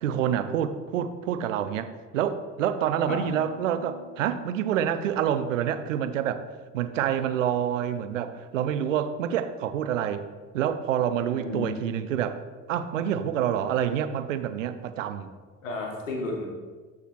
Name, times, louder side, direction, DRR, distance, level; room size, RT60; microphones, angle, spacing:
voice 1, 0.0-6.4 6.7-10.2 10.5-12.4 12.7-15.3, right 9 dB, 75° right, 11 dB, 0.6 m, -27 dB
Harp, 3.1-7.2 7.5-8.0 8.5-8.9, left 2 dB, 30° left, 2.4 m, -47 dB
voice 2, 11.3-11.8 15.6-16.5, left 3 dB, 80° left, 1 dB, 1.4 m, -33 dB
13.0 x 4.7 x 3.0 m, 1.4 s
figure-of-eight pair, 55°, 38 cm